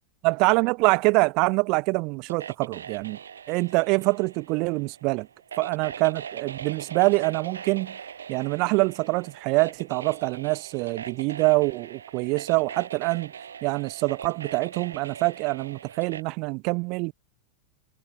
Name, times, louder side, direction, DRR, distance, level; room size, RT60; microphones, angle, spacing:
voice 1, 0.2-3.2 3.5-5.3 5.6-8.0 8.3-13.3 13.6-17.1, right 28 dB, 45° right, 0.4 m, -25 dB
sound 1, 2.3-16.2, right 7 dB, 70° right, 2.1 m, -41 dB
figure-of-eight pair, 90°, 0 cm